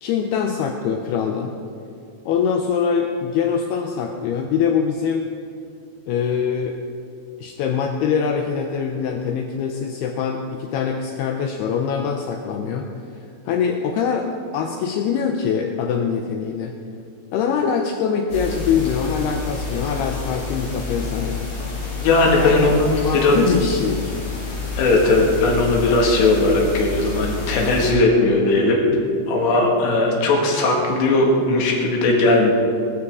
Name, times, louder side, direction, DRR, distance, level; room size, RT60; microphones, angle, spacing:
voice 1, 0.0-1.5 2.3-5.3 6.1-6.8 7.4-12.9 13.5-16.7 17.3-21.4 22.4-22.6 23.0-24.2, left 6 dB, 85° left, 4 dB, 2.3 m, -23 dB
sound 1, 18.3-27.9, left 4 dB, 40° left, 5.6 m, -29 dB
voice 2, 22.0-22.9 23.2-23.4 24.8-28.8 29.3-32.5, left 2 dB, 70° left, 0 dB, 4.0 m, -18 dB
19.5 x 13.0 x 3.7 m, 2.5 s
omnidirectional pair, 5.4 m